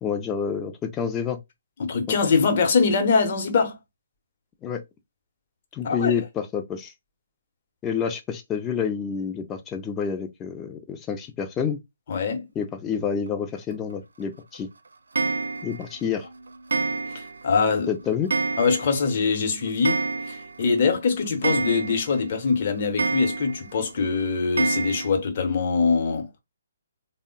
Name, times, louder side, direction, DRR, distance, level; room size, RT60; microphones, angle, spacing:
voice 1, 0.0-1.4 2.1-2.2 4.6-4.8 5.7-6.9 7.8-11.8 12.6-14.7 15.6-16.3 17.9-18.3, left 7 dB, 15° left, 0.5 m, -28 dB
voice 2, 1.8-3.8 5.8-6.1 12.1-12.5 17.1-17.9 18.6-20.0 20.3-26.3, left 5 dB, 40° left, 0.8 m, -23 dB
Clock, 15.1-15.9 16.7-17.4 17.7-17.8 18.3-19.1 19.3-19.4 19.7-20.6 20.9-21.0 21.4-22.2 23.0-23.7 24.6-25.1, right 4 dB, 65° right, 0.3 m, -27 dB
3.5 x 2.1 x 3.7 m
figure-of-eight pair, 130°, 0 cm